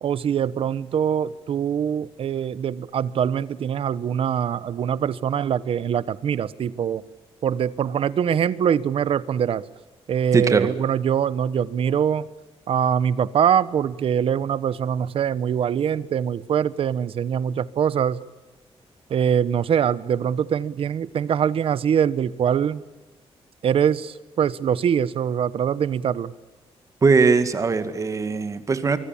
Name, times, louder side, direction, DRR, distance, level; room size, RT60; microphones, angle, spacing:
voice 1, 0.0-7.0 7.4-9.6 10.1-12.3 12.7-18.2 19.1-22.8 23.6-26.3, right 8 dB, 65° right, 18 dB, 1.0 m, -23 dB
voice 2, 10.3-10.7 27.0-29.0, right 4 dB, 30° right, 11 dB, 2.0 m, -20 dB
25.0 x 23.5 x 7.2 m, 1.2 s
wide cardioid pair, 170°, 10 cm